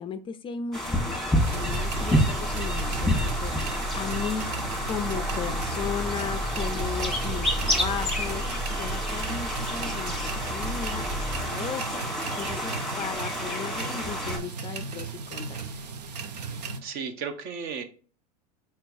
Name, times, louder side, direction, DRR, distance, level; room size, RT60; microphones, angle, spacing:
voice 1, 0.0-8.4 8.7-15.6, left 7 dB, 25° left, 0.4 m, -36 dB
sound 1, 0.7-14.4, equal, ahead, 1.3 m, -29 dB
sound 2, 1.4-16.8, right 5 dB, 85° right, 0.6 m, -37 dB
sound 3, 1.7-11.5, equal, 15° right, 1.6 m, -34 dB
voice 2, 16.5-17.8, right 6 dB, 50° right, 0.9 m, -35 dB
4.4 x 4.3 x 2.6 m
hypercardioid pair, 90°, 21 cm